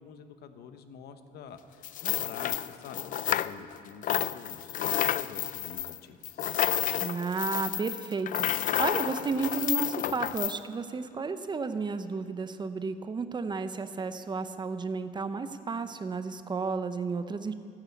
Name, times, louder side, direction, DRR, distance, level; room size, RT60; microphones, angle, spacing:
voice 1, 0.0-6.5, left 7 dB, 70° left, 9 dB, 1.0 m, -47 dB
sound 1, 1.8-10.6, left 12 dB, 50° left, 0.4 m, -30 dB
voice 2, 7.0-17.5, right 4 dB, 25° right, 10 dB, 0.7 m, -32 dB
13.5 x 9.1 x 8.5 m, 2.4 s
cardioid pair, 110°, 17 cm